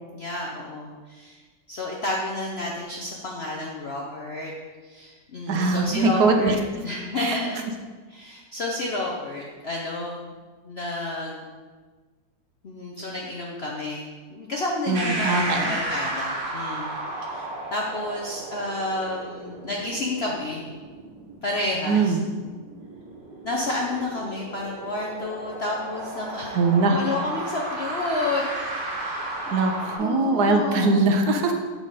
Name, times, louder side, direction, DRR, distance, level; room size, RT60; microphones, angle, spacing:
voice 1, 0.1-1.4 1.7-4.5 4.8-6.6 6.8-7.6 8.1-10.3 10.6-11.4 12.6-16.9 17.3-20.7 21.4-22.1 23.4-26.6 26.9-28.4 29.0-29.3 30.0-31.0, left 2 dB, 65° left, -2 dB, 0.6 m, -30 dB
voice 2, 5.5-6.6 7.2-7.4 14.9-15.8 21.9-22.2 26.5-27.0 29.5-31.5, right 3 dB, 65° right, 4 dB, 1.2 m, -21 dB
sound 1, 14.9-30.0, right 2 dB, 80° right, 1.9 m, -34 dB
6.6 x 4.2 x 4.8 m, 1.4 s
omnidirectional pair, 1.9 m